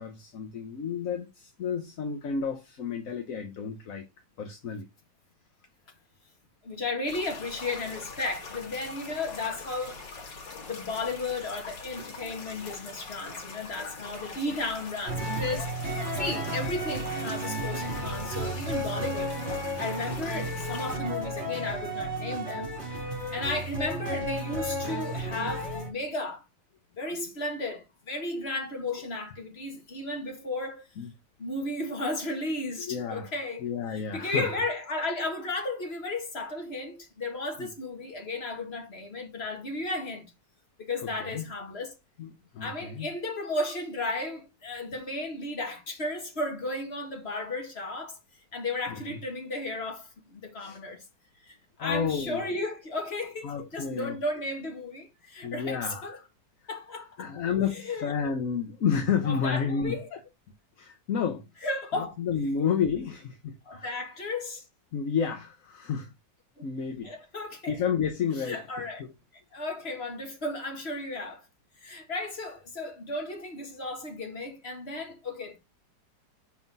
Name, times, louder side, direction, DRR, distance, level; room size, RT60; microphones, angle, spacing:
voice 1, 0.0-4.0 4.4-4.9 31.0-31.1 32.8-33.3 33.6-34.5 37.6-37.7 41.2-41.5 42.2-43.1 49.1-49.2 50.6-50.8 51.8-52.5 53.4-54.2 55.4-56.3 57.2-60.2 60.8-61.5 62.0-63.9 64.9-66.1 66.6-67.1 67.7-68.6 69.0-69.1, left 7 dB, 55° left, 1.2 m, -31 dB
voice 2, 6.6-10.0 10.7-15.7 16.1-23.0 23.3-26.4 27.0-30.8 31.4-33.6 33.9-40.3 40.8-41.9 42.6-48.2 48.5-51.0 51.4-56.2 56.7-57.4 57.7-58.1 59.2-60.1 61.6-62.1 63.6-64.6 66.6-66.7 67.0-67.8 68.5-69.0 69.5-71.5 71.8-75.6, left 2 dB, 35° left, 2.0 m, -34 dB
sound 1, 7.1-21.0, left 4 dB, 80° left, 2.3 m, -43 dB
sound 2, 15.1-25.9, right 1 dB, 35° right, 3.0 m, -33 dB
5.5 x 4.5 x 5.4 m
omnidirectional pair, 1.9 m